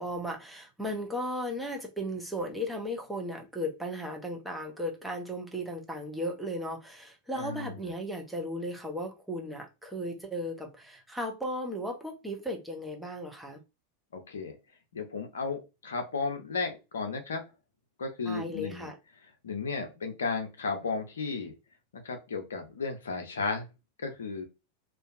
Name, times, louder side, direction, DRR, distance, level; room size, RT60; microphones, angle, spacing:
voice 1, 0.0-13.6 18.3-19.0, equal, 5° right, 0.7 m, -36 dB
voice 2, 7.3-7.8 14.1-14.6 14.9-17.4 18.0-18.9 19.4-21.5 21.9-23.7 24.0-24.4, left 4 dB, 65° left, 0.7 m, -34 dB
2.6 x 2.2 x 2.5 m
figure-of-eight pair, 90°, 0 cm